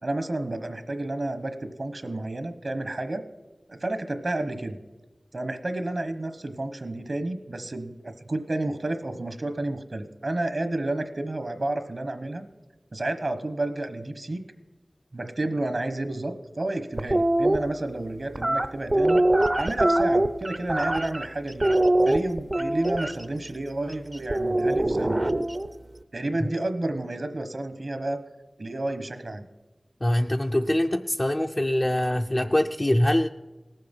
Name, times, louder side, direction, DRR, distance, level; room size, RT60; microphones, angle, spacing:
voice 1, 0.0-3.2 3.7-4.8 5.3-12.5 12.9-14.4 15.1-19.2 19.6-21.7 22.0-25.2 26.1-28.2 28.6-29.5, right 2 dB, 60° right, 1.2 m, -30 dB
sound 1, 17.0-17.6 18.4-21.3 21.6-23.1 24.3-25.7, right 1 dB, 35° right, 0.6 m, -22 dB
voice 2, 30.0-33.3, left 1 dB, 25° left, 0.4 m, -23 dB
18.5 x 7.8 x 5.4 m
wide cardioid pair, 60°, 0 cm